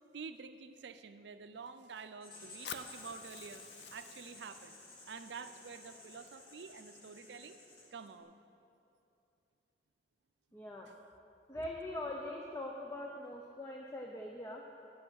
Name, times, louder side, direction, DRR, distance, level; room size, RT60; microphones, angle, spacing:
voice 1, 0.1-4.8 5.1-7.6 7.9-8.3, right 5 dB, 85° right, 10 dB, 0.5 m, -48 dB
Writing, 2.2-8.2, left 2 dB, 50° left, 2.1 m, -54 dB
Fire, 2.6-6.7, left 8 dB, 80° left, 0.5 m, -52 dB
voice 2, 10.5-10.9 11.5-14.8, left 1 dB, 15° left, 0 dB, 0.5 m, -42 dB
8.6 x 8.5 x 6.4 m, 2.7 s
head